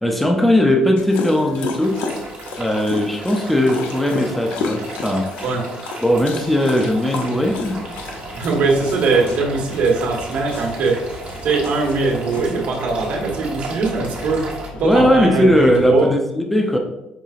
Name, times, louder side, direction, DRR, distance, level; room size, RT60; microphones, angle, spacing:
voice 1, 0.0-2.0 2.6-5.3 6.0-7.8 14.8-16.8, left 1 dB, 5° left, 2 dB, 0.5 m, -18 dB
Dog, 1.0-12.5, left 4 dB, 85° left, 0.5 m, -33 dB
sound 1, 1.8-14.7, right 3 dB, 45° right, 1.2 m, -34 dB
sound 2, 7.4-15.9, left 2 dB, 60° left, 1.2 m, -38 dB
voice 2, 8.3-11.0 11.4-14.5 14.7-16.1, right 4 dB, 70° right, -1 dB, 1.3 m, -20 dB
5.6 x 3.8 x 2.4 m, 0.93 s
cardioid pair, 130°, 3 cm